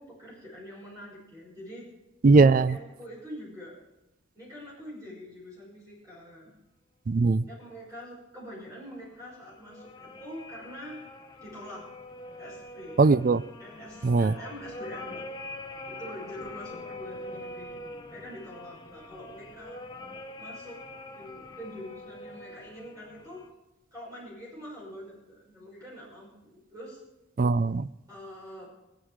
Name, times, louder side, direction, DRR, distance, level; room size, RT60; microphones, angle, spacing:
voice 1, 0.0-1.9 2.3-3.8 4.3-6.5 7.5-11.0 11.4-11.8 12.4-13.0 13.6-15.2 15.9-19.8 20.4-20.8 21.1-23.4 23.9-27.0 28.1-28.7, equal, 20° right, -6 dB, 5.8 m, -44 dB
voice 2, 2.2-2.8 7.1-7.4 13.0-13.4 14.0-14.3 27.4-27.9, right 3 dB, 45° right, 17 dB, 0.4 m, -20 dB
sound 1, 9.1-23.5, left 2 dB, 20° left, 1.0 m, -44 dB
20.5 x 10.0 x 4.8 m, 0.99 s
head